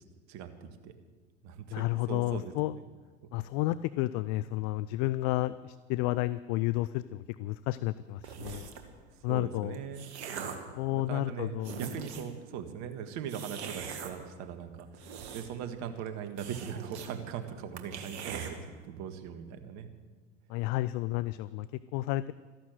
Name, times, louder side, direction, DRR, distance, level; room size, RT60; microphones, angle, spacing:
voice 1, 0.3-0.9 1.4-2.9 3.2-3.5 9.3-18.6 18.8-19.9, right 8 dB, 55° right, 8 dB, 1.9 m, -40 dB
voice 2, 1.7-2.7 3.3-8.7 9.2-9.8 10.8-11.8 20.5-21.7 21.9-22.3, left 17 dB, 50° left, 17 dB, 0.5 m, -31 dB
sound 1, 8.2-8.9 9.6-10.7 11.3-11.4 11.6-12.4 13.3-14.1 14.8-15.7 16.0-16.1 16.4-17.1 17.4-17.5 17.8-18.5, right 7 dB, 70° right, 1.9 m, -41 dB
14.0 x 11.5 x 7.8 m, 1.4 s
figure-of-eight pair, 75°, 34 cm